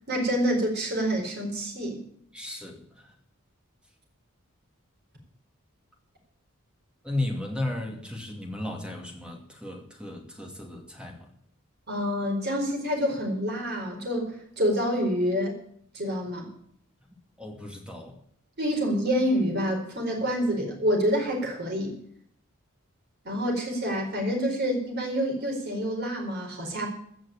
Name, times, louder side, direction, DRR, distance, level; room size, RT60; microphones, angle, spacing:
voice 1, 0.1-2.0 11.9-15.6 15.9-16.5 18.6-22.0 23.2-26.9, equal, 50° right, 0 dB, 4.4 m, -27 dB
voice 2, 2.3-3.2 7.0-11.3 17.4-18.2, left 1 dB, 5° right, 1 dB, 2.5 m, -35 dB
16.0 x 6.3 x 8.7 m, 0.66 s
head